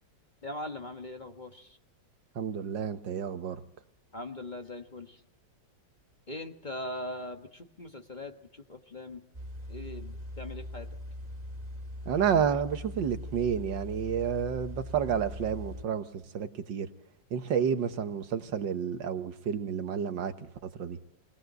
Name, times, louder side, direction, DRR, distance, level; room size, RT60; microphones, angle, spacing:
voice 1, 0.4-1.8 4.1-5.2 6.3-9.2 9.7-10.9, left 1 dB, 30° left, 5 dB, 1.2 m, -41 dB
voice 2, 2.4-3.6 12.1-16.9 17.3-21.0, right 8 dB, 85° right, 9 dB, 1.9 m, -30 dB
sound 1, 9.3-15.8, left 1 dB, 25° right, 1.7 m, -41 dB
23.0 x 18.5 x 7.9 m, 0.79 s
omnidirectional pair, 1.9 m